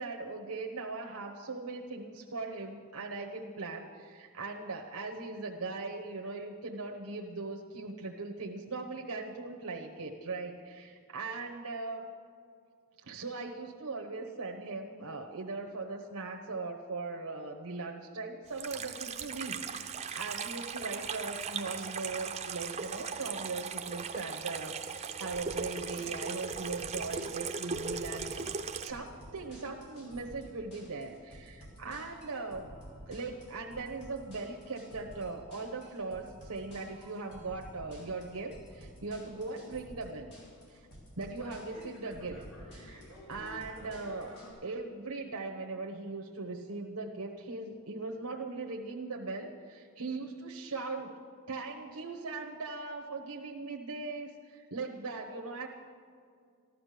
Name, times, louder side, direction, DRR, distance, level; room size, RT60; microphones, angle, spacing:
voice 1, 0.0-12.1 13.0-28.3 28.8-32.7 33.1-40.3 40.7-40.9 41.2-42.4 42.7-43.0 43.3-51.1 51.5-55.7, right 3 dB, 90° right, 1 dB, 1.1 m, -39 dB
Water tap faucet / Sink (filling or washing), 18.5-28.9, right 5 dB, 30° right, 0.7 m, -38 dB
sound 1, 25.3-44.5, equal, 85° left, 5.0 m, -51 dB
14.5 x 12.0 x 6.7 m, 2.2 s
head